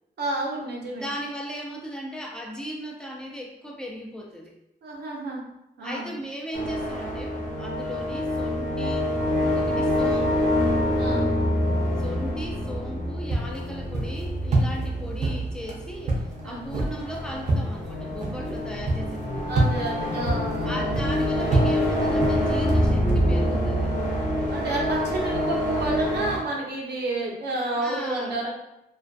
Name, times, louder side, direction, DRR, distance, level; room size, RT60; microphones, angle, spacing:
voice 1, 0.2-1.0 4.8-5.4 5.8-6.1 11.0-11.3 16.4-16.7 19.5-21.0 24.5-28.5, right 2 dB, 90° right, -3 dB, 0.6 m, -30 dB
voice 2, 0.9-4.5 5.8-9.1 9.4-10.6 12.0-19.8 20.6-23.9 27.8-28.4, equal, 5° left, -1 dB, 0.3 m, -37 dB
sound 1, 6.5-26.4, equal, 50° left, 0.7 m, -26 dB
sound 2, 13.3-23.2, right 2 dB, 45° right, 0.5 m, -28 dB
2.4 x 2.2 x 2.4 m, 0.88 s
wide cardioid pair, 145°, 17 cm